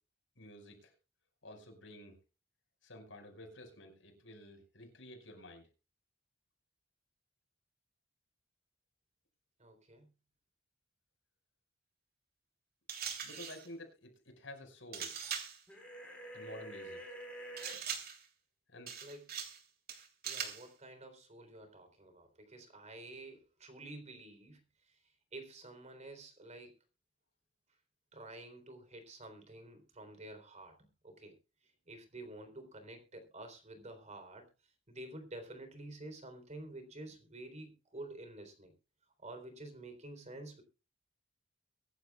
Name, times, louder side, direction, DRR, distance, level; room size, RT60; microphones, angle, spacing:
voice 1, 0.4-0.9 1.4-2.2 2.8-5.7 13.2-15.2 16.3-17.0 18.7-18.9, left 1 dB, 90° left, 3 dB, 5.4 m, -51 dB
voice 2, 9.6-10.1 19.0-19.2 20.2-24.6 24.9-26.7 28.1-31.3 31.6-34.5 34.9-38.7 39.2-40.6, right 2 dB, 40° right, 7 dB, 3.8 m, -50 dB
sound 1, 12.9-13.7 14.9-15.6 17.6-18.3 18.9-19.6 19.9-20.7, right 7 dB, 55° right, 3.3 m, -41 dB
sound 2, 15.7-17.8, right 1 dB, 5° left, 4.6 m, -47 dB
24.0 x 11.5 x 2.4 m, 0.30 s
head